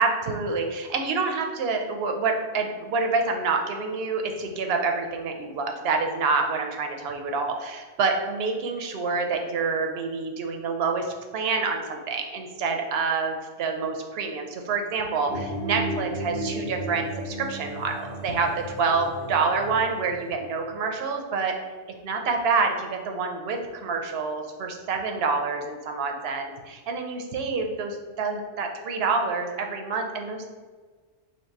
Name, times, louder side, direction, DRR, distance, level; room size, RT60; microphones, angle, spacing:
voice 1, 0.0-21.5 22.0-30.4, right 4 dB, 65° right, 4 dB, 0.7 m, -27 dB
sound 1, 15.3-20.3, right 1 dB, 5° right, 0.6 m, -34 dB
2.9 x 2.8 x 4.4 m, 1.4 s
omnidirectional pair, 1.2 m